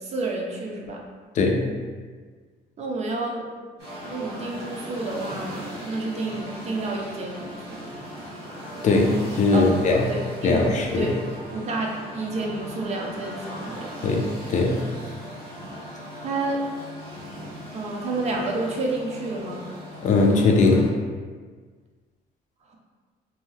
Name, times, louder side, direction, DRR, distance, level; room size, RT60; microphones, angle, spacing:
voice 1, 0.0-1.0 2.8-3.4 4.0-7.8 9.5-9.6 9.9-11.2 11.5-14.1 16.2-16.6 17.7-19.6, right 2 dB, 40° right, -1 dB, 0.5 m, -30 dB
voice 2, 1.3-1.7 8.8-10.1 10.4-11.2 14.0-14.8 20.0-20.9, left 3 dB, 45° left, 1 dB, 0.4 m, -20 dB
sound 1, 3.8-20.9, equal, 85° right, 1.5 m, -39 dB
2.7 x 2.2 x 3.1 m, 1.5 s
cardioid pair, 110°, 17 cm